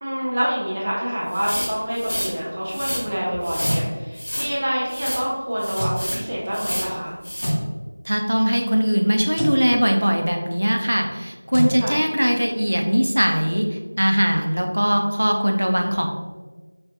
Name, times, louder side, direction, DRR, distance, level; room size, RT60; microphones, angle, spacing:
voice 1, 0.0-7.2 11.8-12.0, equal, 15° right, -5 dB, 0.4 m, -26 dB
sound 1, 1.3-2.3 2.7-3.0 3.4-3.8 4.2-4.5 4.9-5.2 5.6-6.2 6.5-6.9 7.2-7.5, equal, 75° left, 1.1 m, -29 dB
sound 2, 3.3-3.9 5.7-6.0 7.4-7.7 9.3-9.6 11.5-11.8, equal, 30° left, 0.6 m, -25 dB
voice 2, 8.0-16.1, equal, 75° right, 3 dB, 0.6 m, -20 dB
5.5 x 2.3 x 2.7 m, 1.3 s
figure-of-eight pair, 180°, 0 cm